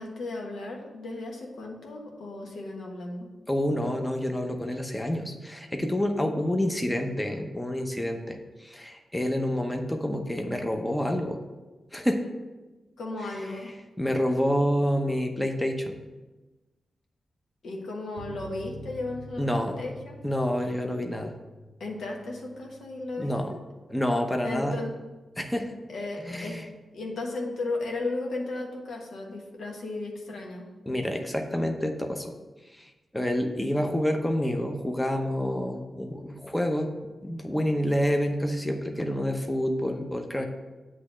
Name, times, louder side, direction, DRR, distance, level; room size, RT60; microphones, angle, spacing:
voice 1, 0.0-3.3 13.0-13.7 17.6-20.1 21.8-23.3 24.4-24.9 25.9-26.6 26.9-30.7, left 2 dB, 80° left, 0 dB, 1.3 m, -35 dB
voice 2, 3.5-11.4 11.9-12.3 13.2-13.3 14.0-16.0 19.4-19.8 20.2-21.3 23.2-23.6 23.9-24.8 25.4-25.7 26.2-26.7 30.9-32.3 32.7-36.9 37.2-40.5, equal, 10° left, 4 dB, 0.8 m, -28 dB
sound 1, 18.2-25.3 25.5-25.6 26.0-26.1, right 1 dB, 75° right, 0.4 m, -48 dB
7.9 x 3.2 x 6.3 m, 1.2 s
cardioid pair, 65°, 0 cm